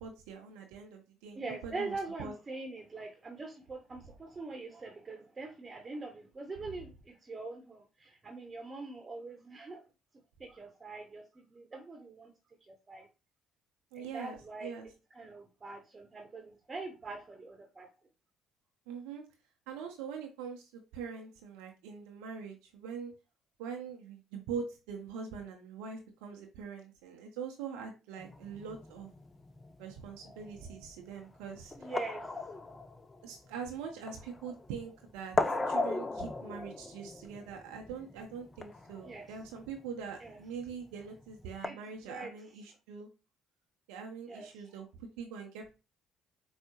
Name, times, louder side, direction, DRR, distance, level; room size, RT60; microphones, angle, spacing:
voice 1, 0.0-2.3 13.9-14.9 18.9-19.2 19.7-23.1 23.6-29.1 29.8-31.9 33.2-35.4 35.7-43.1 43.9-45.7, right 6 dB, 75° right, 3 dB, 0.5 m, -43 dB
voice 2, 1.3-9.8 10.4-12.3 12.7-13.1 13.9-14.7 15.1-17.9 31.8-32.4 39.0-39.3 40.2-40.4 41.6-41.8 42.0-42.3 44.3-44.5, right 3 dB, 30° right, 4 dB, 0.8 m, -43 dB
sound 1, 28.2-41.7, left 3 dB, 25° left, 0.4 m, -38 dB
4.5 x 2.0 x 2.9 m, 0.29 s
hypercardioid pair, 55°, 0 cm